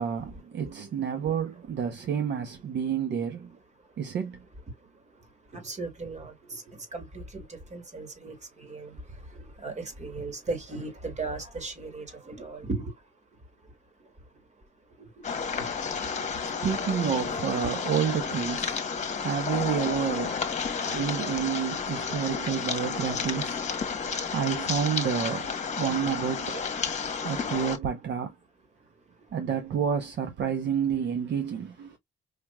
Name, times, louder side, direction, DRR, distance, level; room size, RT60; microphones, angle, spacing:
voice 1, 0.0-3.6 4.0-4.4 15.5-15.6 16.0-20.4 20.8-23.6 24.3-26.7 27.2-28.3 29.3-32.0, right 8 dB, 60° right, 0.9 m, -30 dB
voice 2, 5.5-9.0 9.6-12.9 15.6-15.8 19.8-19.9 23.2-23.3, right 3 dB, 35° right, 2.2 m, -37 dB
sound 1, 15.2-27.8, left 5 dB, 35° left, 1.2 m, -31 dB
5.0 x 3.0 x 2.3 m
cardioid pair, 90°, 20 cm